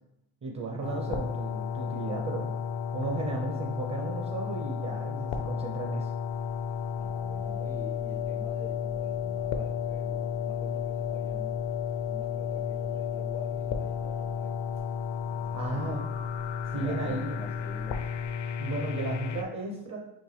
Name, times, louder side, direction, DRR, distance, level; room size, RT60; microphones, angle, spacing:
voice 1, 0.4-2.5 2.9-6.1 15.5-16.1 16.7-17.4 18.6-20.0, right 3 dB, 35° right, 1 dB, 0.6 m, -34 dB
sound 1, 0.8-19.4, left 7 dB, 60° left, 0.6 m, -33 dB
sound 2, 6.3-18.3, left 3 dB, 85° left, 0.8 m, -53 dB
voice 2, 7.0-11.6 12.0-14.6 15.2-16.0 16.7-18.1, left 1 dB, 5° left, 2 dB, 0.4 m, -47 dB
6.0 x 2.1 x 3.2 m, 0.89 s
cardioid pair, 100°, 50 cm